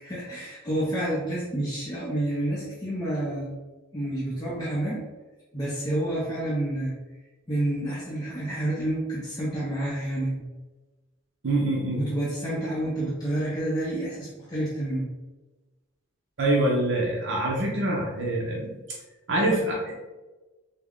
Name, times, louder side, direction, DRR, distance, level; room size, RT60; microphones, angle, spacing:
voice 1, 0.0-3.5 3.9-5.0 5.5-6.9 7.5-10.4 11.9-15.1, right 1 dB, 20° left, -8 dB, 0.6 m, -29 dB
voice 2, 11.4-12.0 16.4-18.7 19.3-19.9, right 1 dB, 60° right, -2 dB, 0.6 m, -25 dB
3.5 x 2.1 x 3.5 m, 1.2 s
head